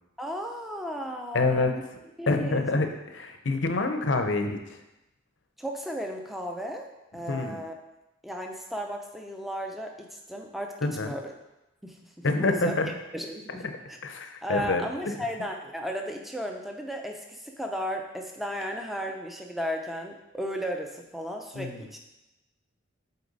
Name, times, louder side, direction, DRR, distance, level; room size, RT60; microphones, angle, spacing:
voice 1, 0.2-1.8 2.2-2.7 5.6-6.9 7.1-7.8 8.2-11.3 11.8-12.0 12.4-12.7 13.1-14.0 14.4-22.0, equal, ahead, 2 dB, 0.6 m, -35 dB
voice 2, 1.3-1.7 2.3-4.8 7.3-7.6 10.8-11.1 12.2-12.9 14.0-14.8 21.5-21.9, left 3 dB, 70° left, 6 dB, 0.7 m, -27 dB
8.1 x 4.3 x 4.0 m, 0.96 s
head